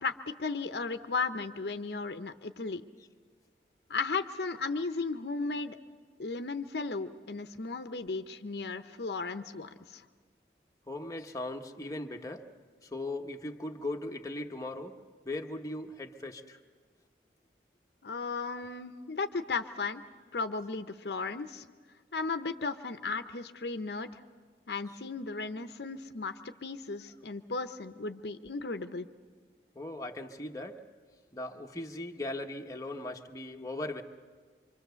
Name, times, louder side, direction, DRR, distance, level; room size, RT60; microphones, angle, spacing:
voice 1, 0.0-2.8 3.9-5.8 6.2-10.0 18.0-20.0 20.3-21.6 22.1-24.2 24.7-29.1, left 4 dB, 70° left, 9 dB, 0.8 m, -35 dB
voice 2, 10.9-12.4 12.8-15.0 15.2-16.6 29.7-30.8 31.3-34.0, left 2 dB, 20° left, 2 dB, 1.0 m, -38 dB
26.0 x 25.0 x 6.9 m, 1.5 s
head